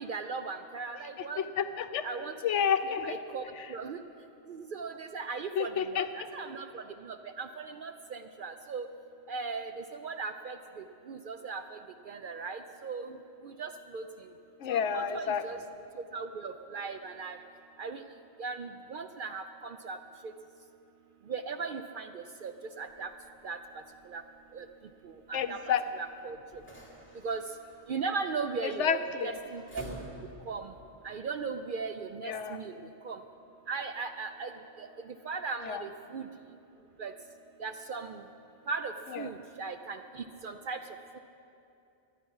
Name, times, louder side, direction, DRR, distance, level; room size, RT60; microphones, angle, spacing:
voice 1, 0.0-1.4 2.0-2.3 2.8-4.0 4.5-8.9 9.3-11.8 12.1-13.2 13.4-14.0 14.7-15.6 16.1-17.4 17.8-18.0 18.4-20.0 21.3-23.1 23.4-23.6 24.1-24.2 24.5-24.7 25.0-25.6 25.9-26.4 27.2-27.4 27.9-29.8 30.5-30.7 31.0-32.7 33.0-33.2 33.7-34.5 34.8-34.9 35.3-36.2 37.0-37.1 37.6-38.2 38.7-40.8 41.1-41.2, right 4 dB, 60° right, 8 dB, 0.6 m, -38 dB
voice 2, 1.4-2.1 2.4-3.2 3.6-3.7 5.6-6.1 14.6-15.4 25.3-25.8 28.6-29.3 32.2-32.6 35.6-35.8 39.1-39.3, left 7 dB, 75° left, 10 dB, 1.0 m, -30 dB
sound 1, 22.9-30.6, equal, 10° left, 3.1 m, -51 dB
23.5 x 9.2 x 5.5 m, 2.7 s
omnidirectional pair, 1.3 m